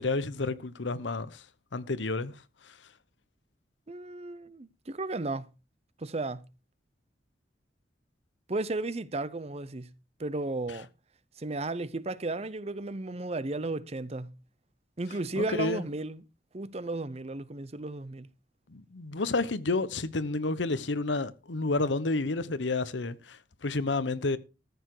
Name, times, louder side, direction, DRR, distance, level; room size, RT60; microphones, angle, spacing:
voice 1, 0.0-1.5 1.7-2.8 15.4-15.8 18.7-24.4, left 3 dB, 85° left, 1.0 m, -30 dB
voice 2, 3.9-5.5 6.0-6.4 8.5-9.9 10.2-10.9 11.4-14.4 15.0-16.2 16.5-18.3, right 2 dB, 35° right, 0.7 m, -34 dB
14.0 x 8.2 x 4.8 m
head